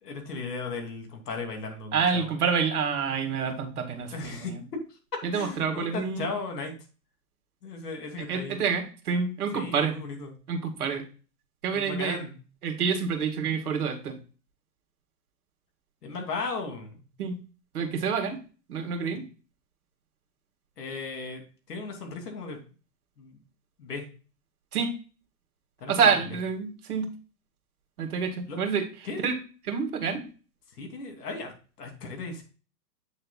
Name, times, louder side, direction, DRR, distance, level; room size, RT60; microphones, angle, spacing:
voice 1, 0.0-2.4 4.1-4.5 4.9-5.0 5.3-6.7 7.6-8.6 9.5-10.3 11.7-12.4 16.0-17.0 20.8-21.4 21.7-22.6 23.2-23.4 23.8-24.0 25.8-26.2 28.5-28.6 29.0-29.3 30.7-31.5 31.8-32.4, left 3 dB, 65° left, 3 dB, 2.8 m, -36 dB
voice 2, 1.9-4.6 5.2-6.3 8.3-9.9 10.5-11.0 11.6-12.2 12.6-14.1 17.2-17.4 17.7-18.4 18.7-19.2 24.7-24.9 25.9-27.1 28.0-28.8 29.2-29.3 29.7-30.3, right 6 dB, 60° right, 6 dB, 2.1 m, -27 dB
8.6 x 6.5 x 2.3 m, 0.36 s
hypercardioid pair, 125°, 50 cm